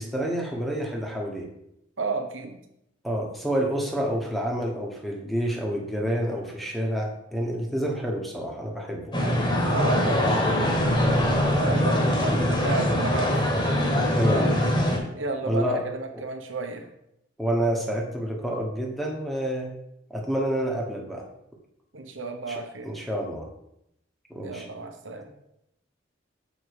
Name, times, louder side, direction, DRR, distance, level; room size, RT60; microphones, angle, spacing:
voice 1, 0.0-1.5 3.0-9.1 12.3-12.5 14.1-14.6 15.5-15.8 16.1-16.2 17.4-19.8 20.1-21.3 22.5-22.6 22.8-23.5 24.3-24.7, equal, ahead, 0 dB, 1.2 m, -28 dB
voice 2, 2.0-2.6 9.2-9.3 9.6-10.4 11.5-13.5 14.5-14.6 15.1-16.8 21.9-22.9 24.4-25.3, right 3 dB, 85° right, 4 dB, 1.1 m, -32 dB
sound 1, 9.1-15.0, left 1 dB, 25° left, 1.4 m, -23 dB
7.0 x 5.2 x 4.8 m, 0.81 s
head